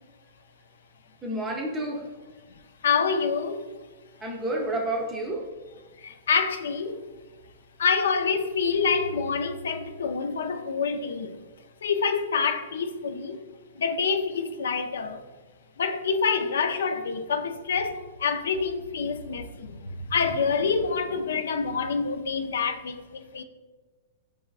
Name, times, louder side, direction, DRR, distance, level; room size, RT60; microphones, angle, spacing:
voice 1, 1.2-2.1 4.2-5.5, right 1 dB, 15° right, 0.5 m, -30 dB
voice 2, 2.8-3.7 6.0-7.1 7.8-11.4 11.8-13.4 13.8-15.2 15.8-23.4, left 5 dB, 90° left, 0.3 m, -27 dB
4.7 x 2.3 x 2.3 m
hypercardioid pair, 140°, 0 cm